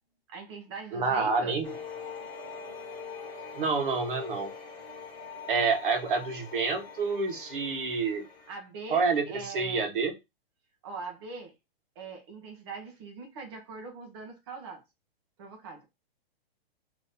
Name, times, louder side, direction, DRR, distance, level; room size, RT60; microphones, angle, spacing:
voice 1, 0.3-1.6 8.5-9.9 10.8-11.5 12.0-14.8 15.4-15.8, right 4 dB, 25° right, 0.8 m, -42 dB
voice 2, 0.9-1.8 3.5-4.5 5.5-8.2 8.9-10.1, right 4 dB, 55° right, 1.2 m, -28 dB
sound 1, 1.6-8.5, left 5 dB, 5° left, 0.5 m, -43 dB
3.7 x 2.8 x 2.7 m
hypercardioid pair, 175°, 31 cm